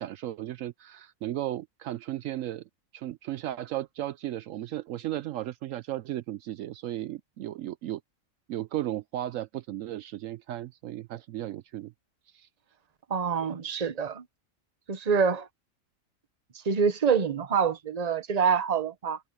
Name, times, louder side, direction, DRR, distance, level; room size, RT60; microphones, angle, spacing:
voice 1, 0.0-8.0 8.5-11.9 12.3-12.5, right 13 dB, 75° right, 0.9 m, -35 dB
voice 2, 13.1-14.2 14.9-15.5 16.6-19.2, right 6 dB, 30° right, 1.0 m, -26 dB
omnidirectional pair, 1.4 m